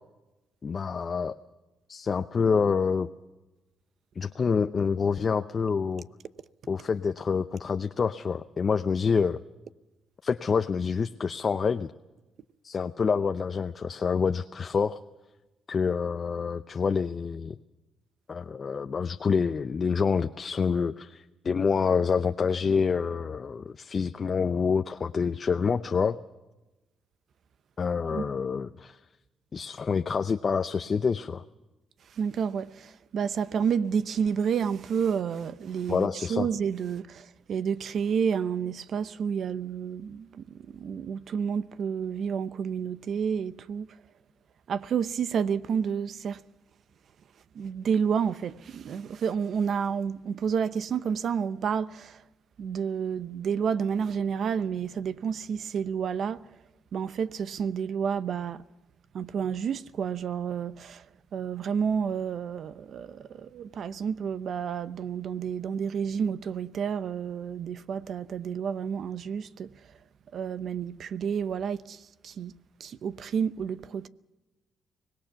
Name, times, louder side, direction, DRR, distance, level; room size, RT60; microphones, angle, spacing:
voice 1, 0.6-1.4 1.9-3.1 4.2-6.1 6.7-9.4 10.2-11.9 12.6-15.0 15.7-17.6 18.3-26.2 27.8-29.0 29.5-31.4 35.9-36.5, left 5 dB, 40° left, 0.7 m, -27 dB
voice 2, 32.1-43.9 44.7-46.4 47.5-52.2 52.6-56.4 56.9-58.6 59.1-61.1 61.3-69.7 70.3-72.5 72.8-74.1, right 7 dB, 60° right, 0.8 m, -30 dB
25.0 x 19.0 x 5.9 m
cardioid pair, 90°, 0 cm